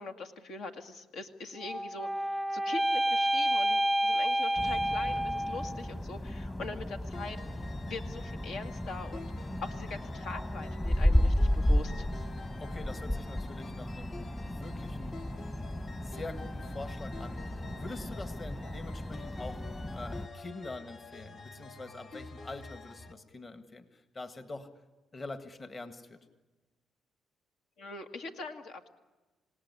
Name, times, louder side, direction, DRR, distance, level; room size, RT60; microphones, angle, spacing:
voice 1, 0.0-7.4 7.9-9.3 9.6-12.1 27.8-28.9, left 3 dB, 75° left, 6 dB, 2.0 m, -42 dB
sound 1, 1.6-5.9, right 1 dB, ahead, 0.7 m, -29 dB
sound 2, 4.6-20.3, left 1 dB, 15° left, 1.2 m, -33 dB
sound 3, 7.1-23.1, left 3 dB, 50° left, 1.5 m, -48 dB
voice 2, 12.6-14.2 14.4-15.2 16.0-17.4 17.7-19.7 19.9-24.8 25.1-26.3, left 2 dB, 30° left, 9 dB, 1.8 m, -45 dB
27.5 x 18.5 x 9.8 m, 1.2 s
cardioid pair, 90°, 0 cm